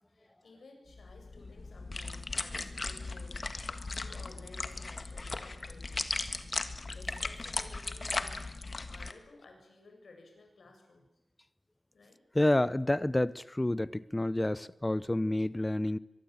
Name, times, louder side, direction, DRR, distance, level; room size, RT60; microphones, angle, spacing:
voice 1, 0.1-3.4 3.9-6.1 6.9-8.4 8.8-11.1 11.9-12.2, left 3 dB, 75° left, 7.4 m, -55 dB
sound 1, 0.9-9.1, left 3 dB, 40° left, 1.8 m, -37 dB
voice 2, 12.3-16.0, left 1 dB, 15° left, 0.8 m, -29 dB
23.5 x 22.5 x 8.9 m
wide cardioid pair, 100°, 0 cm